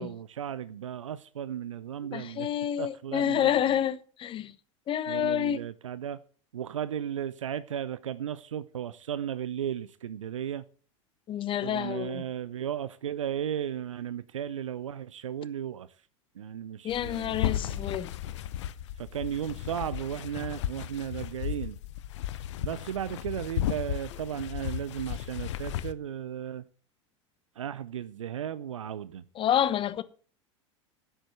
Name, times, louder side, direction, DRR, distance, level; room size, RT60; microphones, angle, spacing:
voice 1, 0.0-2.5 2.8-3.6 5.1-6.2 6.5-10.7 11.6-15.9 16.3-17.9 19.0-21.8 22.6-26.6 27.6-29.2, right 9 dB, 80° right, 0.6 m, -35 dB
voice 2, 2.1-4.5 4.9-5.6 11.3-12.2 16.8-18.1 29.4-30.0, left 10 dB, 35° left, 1.0 m, -28 dB
sound 1, 16.9-25.9, left 12 dB, 65° left, 0.8 m, -35 dB
10.5 x 8.0 x 7.9 m
hypercardioid pair, 85°, 16 cm